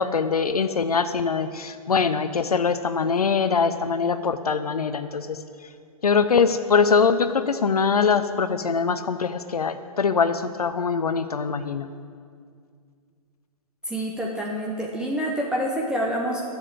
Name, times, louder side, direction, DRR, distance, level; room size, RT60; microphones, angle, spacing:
voice 1, 0.0-5.4 6.0-11.9, left 5 dB, 75° left, 11 dB, 0.6 m, -23 dB
voice 2, 13.8-16.4, equal, 5° right, -3 dB, 0.9 m, -27 dB
10.5 x 7.1 x 7.9 m, 2.2 s
figure-of-eight pair, 120°, 19 cm